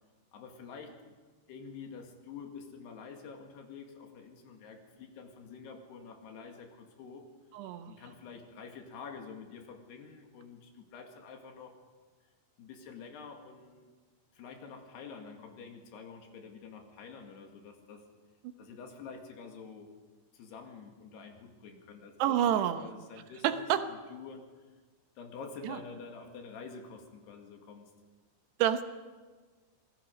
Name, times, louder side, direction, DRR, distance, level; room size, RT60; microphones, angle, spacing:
voice 1, 0.3-1.2 1.5-7.3 7.9-11.8 12.6-13.9 14.3-18.1 18.6-19.9 20.3-24.5 25.2-27.9, left 5 dB, 80° left, 3 dB, 4.1 m, -48 dB
voice 2, 7.5-7.9 22.2-22.8 23.4-23.9 25.6-25.8 28.6-28.8, right 10 dB, 85° right, 9 dB, 3.1 m, -28 dB
26.5 x 19.5 x 5.2 m, 1.4 s
omnidirectional pair, 4.7 m